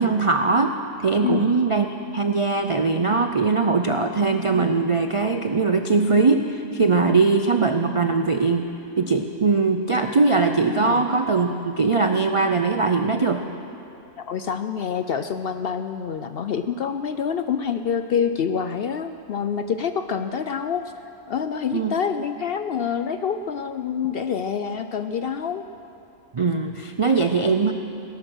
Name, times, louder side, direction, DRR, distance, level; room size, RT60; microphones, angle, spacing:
voice 1, 0.0-1.9 2.1-8.7 9.0-13.4 21.7-21.9 26.3-27.7, right 4 dB, 55° right, 6 dB, 0.3 m, -21 dB
voice 2, 14.2-20.9 21.3-25.6, left 7 dB, 65° left, 9 dB, 0.6 m, -26 dB
18.5 x 11.5 x 6.3 m, 2.9 s
omnidirectional pair, 1.4 m